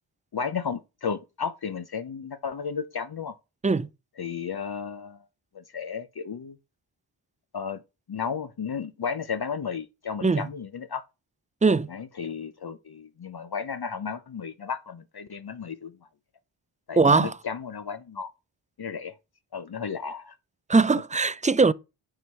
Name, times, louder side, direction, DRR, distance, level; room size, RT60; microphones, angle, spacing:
voice 1, 0.3-3.3 4.2-5.2 5.5-6.6 7.5-7.8 8.1-11.0 11.9-15.9 16.9-18.3 18.8-19.1 19.5-20.4, left 6 dB, 50° left, 0.8 m, -33 dB
voice 2, 17.0-17.3 20.7-21.7, right 4 dB, 15° right, 0.4 m, -20 dB
9.0 x 4.7 x 5.6 m
wide cardioid pair, 65°, 49 cm